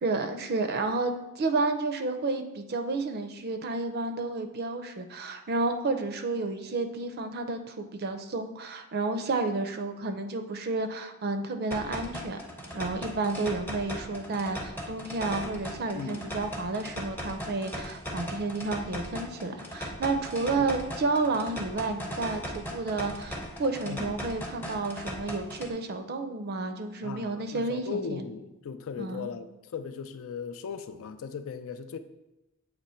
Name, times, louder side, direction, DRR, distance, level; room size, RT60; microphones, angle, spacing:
voice 1, 0.0-12.4 12.7-28.3 29.0-29.3, right 3 dB, 45° right, 7 dB, 0.5 m, -31 dB
sound 1, 11.7-25.7, equal, 10° left, 0.7 m, -38 dB
voice 2, 23.8-24.2 27.0-29.5 29.7-32.0, left 6 dB, 65° left, 10 dB, 0.4 m, -37 dB
7.5 x 3.0 x 4.3 m, 0.95 s
head